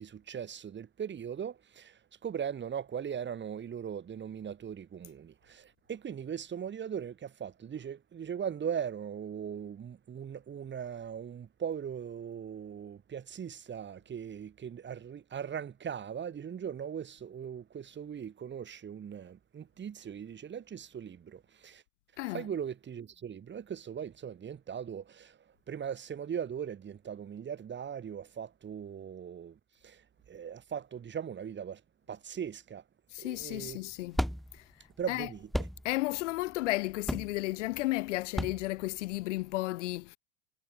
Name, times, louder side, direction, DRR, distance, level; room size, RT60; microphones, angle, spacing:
voice 1, 0.0-21.8 22.3-25.4 25.7-31.8 32.1-32.8 33.2-33.8 35.0-35.7, right 8 dB, 25° right, 5.7 m, -39 dB
voice 2, 22.2-22.5 33.1-34.2 34.5-34.6 35.1-35.3 35.8-40.2, left 19 dB, 60° left, 2.2 m, -33 dB
sound 1, 33.4-39.5, equal, ahead, 2.8 m, -37 dB
figure-of-eight pair, 85°, 41 cm